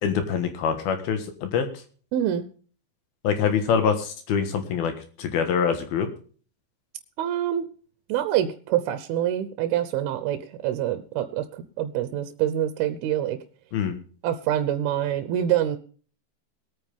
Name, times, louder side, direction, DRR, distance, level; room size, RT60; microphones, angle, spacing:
voice 1, 0.0-1.7 3.2-4.9 5.2-6.1 13.7-13.9, left 7 dB, 70° left, 7 dB, 3.2 m, -24 dB
voice 2, 2.1-2.4 7.2-7.7 8.1-13.4 14.2-15.8, right 11 dB, 75° right, 11 dB, 2.6 m, -26 dB
21.5 x 9.2 x 3.6 m, 0.42 s
omnidirectional pair, 4.8 m